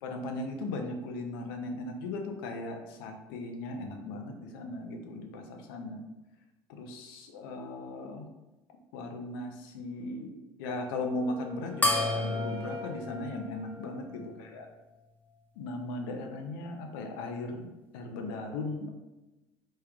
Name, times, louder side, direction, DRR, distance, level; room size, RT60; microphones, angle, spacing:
voice 1, 0.0-6.0 6.7-8.3 8.9-10.3 10.6-14.6 15.6-17.7 17.9-18.9, left 2 dB, 75° left, 4 dB, 0.5 m, -37 dB
Wind instrument woodwind instrument, 10.9-14.8, right 1 dB, 45° right, 0.6 m, -47 dB
sound 1, 11.8-14.6, left 2 dB, 15° left, 0.6 m, -32 dB
3.4 x 3.2 x 2.3 m, 1.0 s
hypercardioid pair, 65°, 12 cm